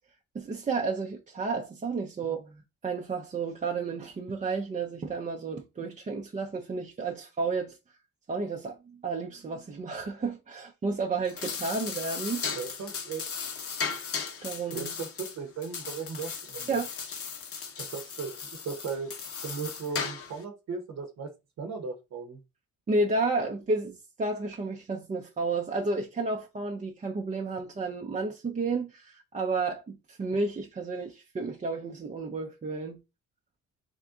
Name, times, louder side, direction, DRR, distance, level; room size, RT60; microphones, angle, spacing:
voice 1, 0.3-7.8 8.3-8.8 9.0-12.4 14.4-14.9 16.7-16.9 22.9-33.0, right 3 dB, 25° right, 0.5 m, -31 dB
sound 1, 11.2-20.4, left 6 dB, 50° left, 0.8 m, -37 dB
voice 2, 12.5-13.3 14.7-16.7 17.8-19.1 19.4-21.3 21.6-22.4, right 5 dB, 60° right, 0.9 m, -37 dB
3.5 x 2.6 x 3.6 m
cardioid pair, 90°, 30 cm